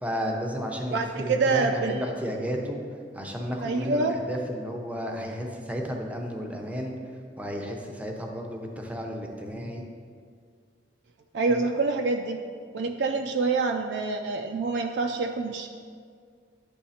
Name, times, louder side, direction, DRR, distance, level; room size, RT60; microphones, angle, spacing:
voice 1, 0.0-2.8 3.1-6.9 7.4-9.8 11.5-11.7, equal, 10° right, 1 dB, 0.7 m, -32 dB
voice 2, 0.9-2.0 3.6-4.1 11.3-12.4 12.7-15.7, right 3 dB, 70° right, 5 dB, 0.4 m, -26 dB
9.9 x 3.3 x 4.1 m, 2.1 s
head